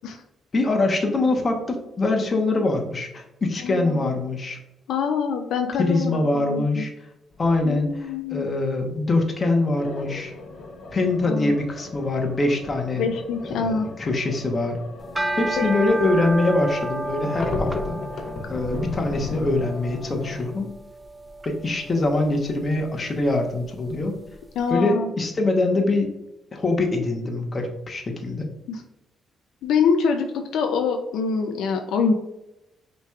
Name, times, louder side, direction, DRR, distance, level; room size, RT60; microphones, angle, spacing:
voice 1, 0.5-4.6 5.8-6.9 7.4-10.3 10.9-13.1 13.4-14.8 15.4-18.0 18.5-20.7 21.4-24.2 24.7-26.1 26.5-28.5, left 2 dB, 35° left, 3 dB, 1.0 m, -23 dB
voice 2, 3.6-4.1 4.9-6.8 7.6-8.5 11.2-11.6 13.0-13.9 15.6-15.7 24.6-25.1 28.7-28.8 29.6-30.2 30.5-32.1, left 5 dB, 80° left, 4 dB, 0.4 m, -25 dB
sound 1, 7.3-7.6 9.8-20.5, left 3 dB, 60° left, 0.9 m, -36 dB
sound 2, 15.0-24.3, right 1 dB, 15° right, 0.5 m, -33 dB
5.8 x 3.1 x 2.4 m, 0.91 s
cardioid pair, 90°, 0 cm